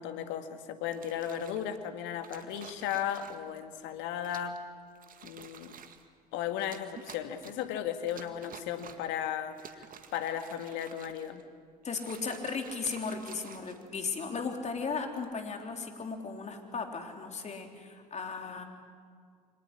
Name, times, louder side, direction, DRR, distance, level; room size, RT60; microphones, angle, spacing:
voice 1, 0.0-4.6 5.2-5.7 6.3-9.8 10.1-11.4, left 9 dB, 65° left, 8 dB, 2.0 m, -35 dB
sound 1, 0.9-1.7 2.2-3.6 4.2-4.6 4.9-6.1 6.6-7.7 8.1-9.1 9.5-11.4 11.8-14.2 15.0-15.3, right 7 dB, 45° right, 1.9 m, -51 dB
voice 2, 11.8-18.6, left 4 dB, 35° left, 4 dB, 3.6 m, -36 dB
24.5 x 19.0 x 9.9 m, 2.1 s
hypercardioid pair, 65°, 21 cm